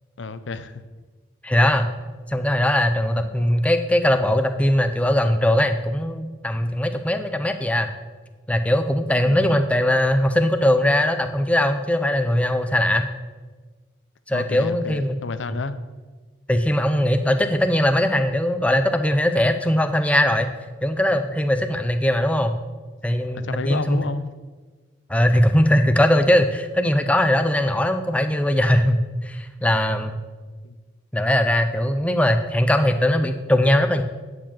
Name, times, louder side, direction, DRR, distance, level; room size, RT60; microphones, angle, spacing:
voice 1, 0.2-0.8 9.2-9.7 14.3-15.8 23.4-24.3 30.6-30.8, left 3 dB, 85° left, 12 dB, 0.6 m, -31 dB
voice 2, 1.4-1.9 2.3-7.9 8.5-13.1 14.3-15.2 16.5-20.5 20.8-22.5 23.0-24.0 25.1-30.2 31.1-34.0, left 1 dB, 5° left, 8 dB, 0.6 m, -20 dB
9.7 x 4.8 x 7.4 m, 1.3 s
head